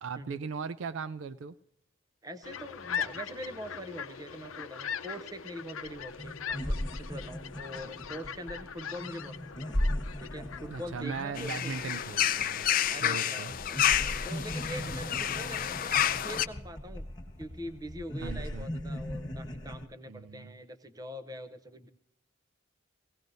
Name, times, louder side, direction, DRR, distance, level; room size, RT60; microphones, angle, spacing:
voice 1, 0.0-1.6 7.8-7.9 10.7-12.6 13.0-13.5 14.8-14.9 18.2-18.7 20.1-20.6, right 5 dB, 75° right, 0.4 m, -38 dB
voice 2, 2.2-9.8 10.2-12.0 12.9-13.8 14.2-17.1 17.4-21.9, equal, 20° right, 0.6 m, -43 dB
sound 1, 2.4-13.2, left 7 dB, 85° left, 0.6 m, -41 dB
sound 2, 5.8-5.9 6.2-13.2 13.5-19.9, left 1 dB, 20° left, 1.4 m, -38 dB
sound 3, 11.4-16.5, left 10 dB, 45° left, 0.4 m, -29 dB
17.5 x 17.5 x 2.6 m
head